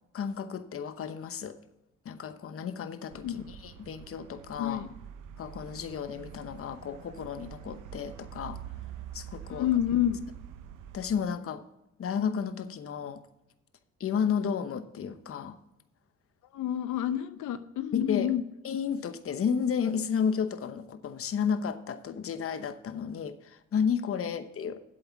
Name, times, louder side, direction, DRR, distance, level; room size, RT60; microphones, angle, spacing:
voice 1, 0.1-1.6 2.0-4.9 5.4-8.6 9.1-9.7 10.9-11.6 12.0-13.2 14.0-15.6 17.9-18.3 18.6-24.9, left 7 dB, 50° left, 11 dB, 0.9 m, -32 dB
sound 1, 3.1-11.2, right 9 dB, 90° right, 0.8 m, -46 dB
voice 2, 4.6-4.9 9.5-10.2 16.5-18.4, left 11 dB, 80° left, 11 dB, 0.7 m, -29 dB
8.1 x 7.8 x 6.0 m, 0.86 s
cardioid pair, 90°, 30 cm